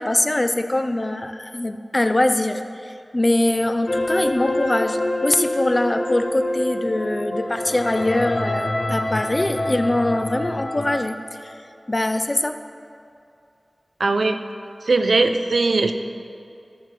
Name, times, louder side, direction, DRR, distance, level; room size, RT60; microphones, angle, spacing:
voice 1, 0.0-11.2 11.4-11.5 11.9-12.6, left 1 dB, 35° left, 8 dB, 0.4 m, -23 dB
sound 1, 3.9-11.0, left 1 dB, 70° left, 0.8 m, -26 dB
voice 2, 14.0-14.4 14.9-15.9, right 3 dB, 85° right, 7 dB, 0.4 m, -19 dB
13.0 x 5.2 x 3.2 m, 2.5 s
wide cardioid pair, 50°, 0 cm